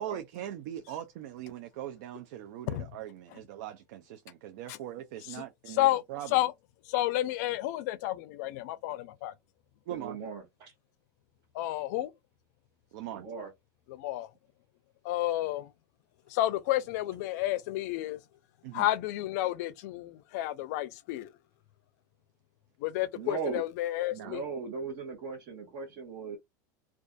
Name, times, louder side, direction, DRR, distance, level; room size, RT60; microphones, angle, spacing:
voice 1, 0.0-6.4 9.9-10.2 12.9-13.2 18.6-18.9 23.5-23.6 24.1-24.4, right 11 dB, 70° right, 0.4 m, -41 dB
voice 2, 5.7-6.0 6.3-6.5 6.9-9.3 11.5-12.1 13.9-14.3 15.0-15.7 16.3-18.2 18.7-21.3 22.8-24.4, left 15 dB, 65° left, 0.4 m, -31 dB
voice 3, 9.9-10.7 13.1-13.5 23.1-23.6 24.2-26.4, right 5 dB, 50° right, 1.0 m, -38 dB
2.5 x 2.3 x 2.2 m
supercardioid pair, 140°, 10 cm